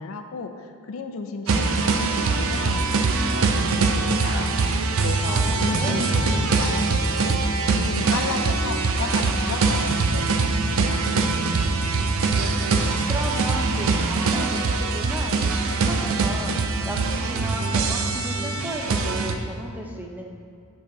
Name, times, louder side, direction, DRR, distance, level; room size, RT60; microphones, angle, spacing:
voice 1, 0.0-7.4 7.7-11.1, left 4 dB, 65° left, 7 dB, 0.4 m, -34 dB
sound 1, 1.5-19.3, right 3 dB, 65° right, 0.5 m, -23 dB
sound 2, 5.1-14.9, right 1 dB, 50° right, 1.3 m, -44 dB
voice 2, 5.2-6.0 12.8-20.3, right 1 dB, 10° right, 1 dB, 0.5 m, -34 dB
6.8 x 5.3 x 3.8 m, 2.4 s
head